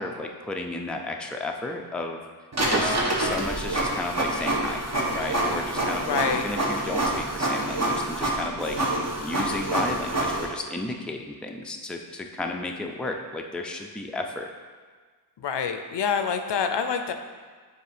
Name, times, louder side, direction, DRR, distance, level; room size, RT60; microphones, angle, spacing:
voice 1, 0.0-2.2 2.7-4.8 5.1-8.8 9.2-14.5, left 2 dB, ahead, 2 dB, 0.4 m, -33 dB
Printer, 2.5-10.4, right 1 dB, 35° right, 1.1 m, -27 dB
voice 2, 6.1-6.5 15.4-17.1, left 6 dB, 75° left, 7 dB, 0.5 m, -26 dB
7.8 x 2.7 x 4.9 m, 1.5 s
wide cardioid pair, 95°, 43 cm